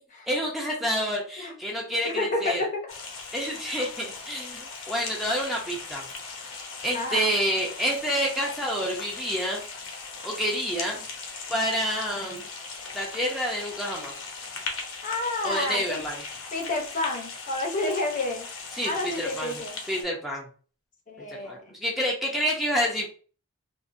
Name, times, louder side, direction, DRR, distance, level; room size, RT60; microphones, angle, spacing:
voice 1, 0.3-2.7 3.3-6.0 6.8-9.6 10.2-11.0 11.5-12.4 12.9-14.1 15.4-16.2 18.7-19.6 19.9-20.5 21.3-23.1, equal, ahead, -2 dB, 0.6 m, -28 dB
voice 2, 2.0-2.8 6.9-7.3 15.0-16.0 16.5-18.5 18.8-19.8 21.1-21.7, left 2 dB, 35° left, 2 dB, 0.8 m, -30 dB
sound 1, 2.9-20.0, left 4 dB, 65° left, 0.9 m, -39 dB
3.9 x 2.6 x 2.5 m, 0.40 s
head